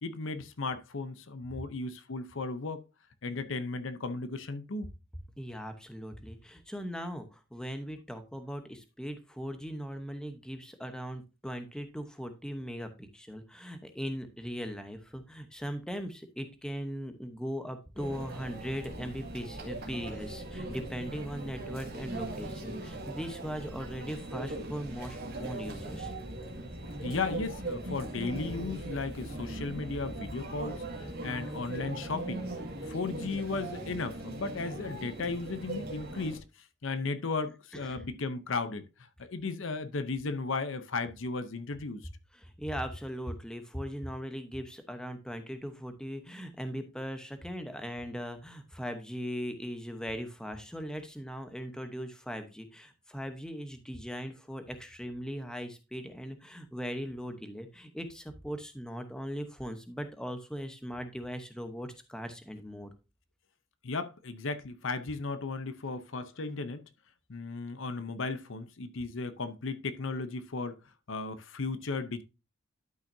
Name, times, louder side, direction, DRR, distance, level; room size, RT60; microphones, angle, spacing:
voice 1, 0.0-2.8 3.2-4.9 27.0-32.5 32.8-36.4 36.8-38.9 39.2-42.1 63.8-66.8 67.3-70.7 71.1-72.2, left 3 dB, 65° left, 0.7 m, -35 dB
voice 2, 5.4-26.1 37.7-38.0 42.3-62.9, equal, 5° left, 0.9 m, -39 dB
Conversation / Chatter / Crowd, 18.0-36.4, right 1 dB, 50° right, 2.0 m, -40 dB
12.0 x 5.6 x 2.7 m
head